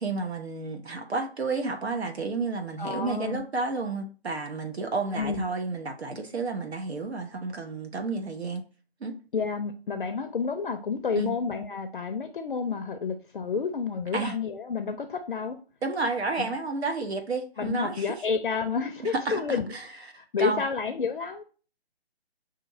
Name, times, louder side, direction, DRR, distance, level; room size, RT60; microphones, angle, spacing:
voice 1, 0.0-8.6 9.0-9.1 11.2-11.3 14.1-14.4 15.8-18.2 19.0-19.9 20.4-20.6, right 3 dB, 75° right, 1.0 m, -31 dB
voice 2, 2.8-3.4 5.1-5.5 9.3-15.6 16.4-16.5 17.6-21.4, left 5 dB, 55° left, 0.5 m, -30 dB
5.7 x 2.7 x 2.6 m
figure-of-eight pair, 155°, 32 cm